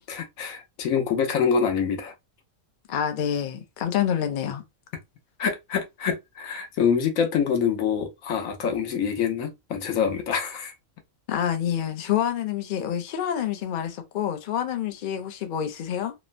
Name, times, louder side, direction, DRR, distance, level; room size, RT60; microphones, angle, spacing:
voice 1, 0.1-2.1 5.4-10.7, left 7 dB, 80° left, 1.1 m, -25 dB
voice 2, 2.9-4.6 11.3-16.1, left 9 dB, 65° left, 0.5 m, -27 dB
2.9 x 2.1 x 2.4 m
omnidirectional pair, 1.4 m